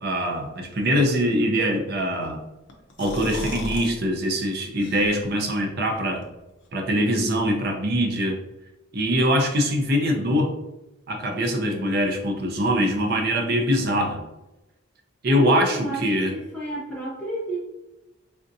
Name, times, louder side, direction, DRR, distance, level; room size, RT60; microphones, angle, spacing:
voice 1, 0.0-2.4 3.0-6.2 6.7-8.4 8.9-10.5 11.1-14.2 15.2-16.4, equal, 50° right, 2 dB, 0.6 m, -23 dB
sound 1, 2.7-3.9 4.3-4.4 4.8-5.5, left 1 dB, 65° left, 0.6 m, -35 dB
voice 2, 15.4-16.0 16.3-17.6, right 1 dB, 5° left, -7 dB, 0.6 m, -31 dB
3.5 x 2.6 x 2.6 m, 0.97 s
head